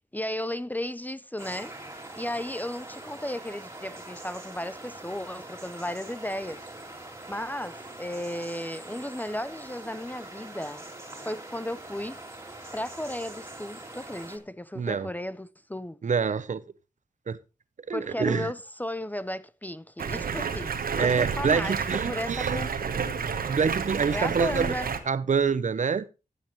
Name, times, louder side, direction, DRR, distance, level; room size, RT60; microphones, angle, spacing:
voice 1, 0.1-1.8 2.2-6.6 7.3-10.8 11.2-12.2 12.7-16.0 17.9-22.7 24.1-24.9, left 1 dB, 10° left, 0.5 m, -34 dB
sound 1, 1.4-14.4, right 2 dB, 20° right, 2.5 m, -43 dB
voice 2, 14.7-15.1 16.0-16.6 17.3-17.4 17.9-18.5 21.0-22.7 23.5-24.7 25.1-26.1, right 6 dB, 55° right, 0.7 m, -26 dB
Stream, 20.0-25.0, right 6 dB, 85° right, 1.2 m, -30 dB
14.5 x 8.3 x 3.0 m
wide cardioid pair, 85°, 15 cm